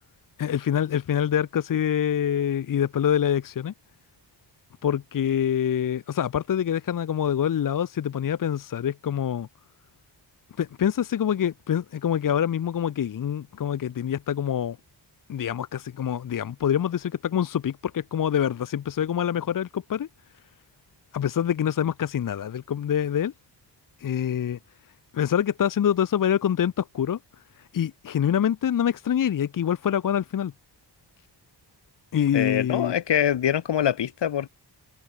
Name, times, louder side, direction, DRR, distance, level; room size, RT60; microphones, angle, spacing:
voice 1, 0.4-3.7 4.8-9.5 10.6-14.8 15.3-20.1 21.1-23.3 24.0-24.6 25.1-27.2 27.7-30.5 32.1-32.9, left 9 dB, 50° left, 0.8 m, -25 dB
voice 2, 32.3-34.5, left 9 dB, 80° left, 2.2 m, -24 dB
wide cardioid pair, 165°, 42 cm